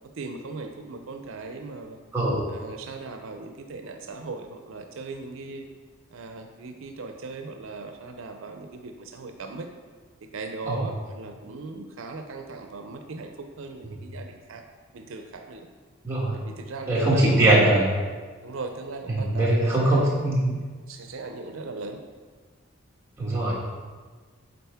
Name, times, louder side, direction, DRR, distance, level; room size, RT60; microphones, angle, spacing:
voice 1, 0.2-2.0 2.5-5.7 6.1-9.7 10.2-13.3 13.6-14.6 14.9-15.7 16.3-17.9 18.4-20.1 20.9-22.0, right 3 dB, 80° right, 5 dB, 0.5 m, -38 dB
voice 2, 16.0-16.3 16.9-17.8 19.1-20.6 23.2-23.5, right 1 dB, 15° right, -6 dB, 1.4 m, -21 dB
8.7 x 4.0 x 3.5 m, 1.5 s
head